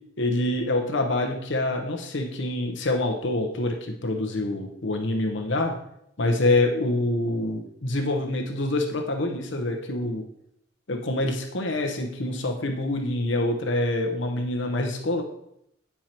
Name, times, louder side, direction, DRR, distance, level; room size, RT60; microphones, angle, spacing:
voice 1, 0.2-5.8 6.2-10.2 10.9-15.2, left 2 dB, 65° left, 3 dB, 0.9 m, -26 dB
9.1 x 4.6 x 4.4 m, 0.76 s
head